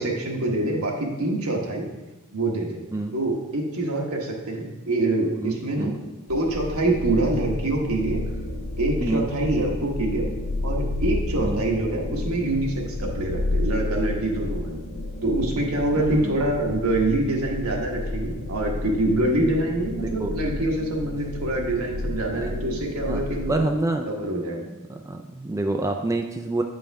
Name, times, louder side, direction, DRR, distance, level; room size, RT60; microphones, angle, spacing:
voice 1, 0.0-1.9 2.3-2.8 3.1-6.0 6.3-8.2 8.8-10.3 10.6-14.8 15.2-23.5 24.1-24.6, right 2 dB, 75° right, 0 dB, 1.3 m, -25 dB
voice 2, 5.2-6.0 9.0-9.3 11.4-11.6 15.9-16.4 19.9-20.3 22.3-22.5 23.1-23.2 23.5-24.1 24.9-26.6, right 2 dB, 15° right, 4 dB, 0.3 m, -27 dB
sound 1, 6.3-23.6, left 2 dB, 75° left, 0.8 m, -31 dB
8.6 x 5.4 x 3.4 m, 1.1 s
head